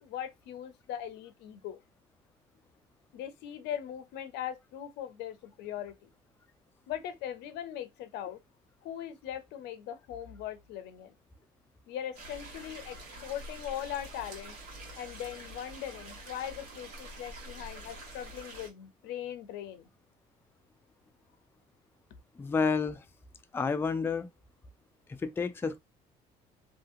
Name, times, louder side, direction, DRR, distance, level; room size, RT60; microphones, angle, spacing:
voice 1, 0.0-1.8 3.1-6.1 6.9-8.4 8.8-11.1 11.9-14.6 15.0-19.9, left 10 dB, 85° left, 0.6 m, -40 dB
sound 1, 12.1-18.7, right 1 dB, 80° right, 1.5 m, -46 dB
voice 2, 22.4-23.0 23.5-24.3 25.2-25.8, left 5 dB, 15° left, 0.3 m, -30 dB
2.8 x 2.7 x 2.4 m
cardioid pair, 110°, 17 cm